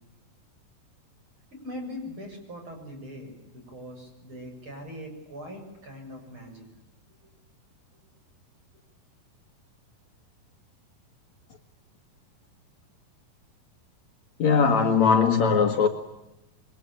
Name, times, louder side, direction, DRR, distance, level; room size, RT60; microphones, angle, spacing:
voice 1, 1.5-6.7, left 1 dB, 35° right, 4 dB, 7.9 m, -41 dB
voice 2, 14.4-15.9, left 5 dB, 55° left, 5 dB, 2.6 m, -20 dB
28.0 x 24.0 x 8.8 m, 0.93 s
omnidirectional pair, 4.2 m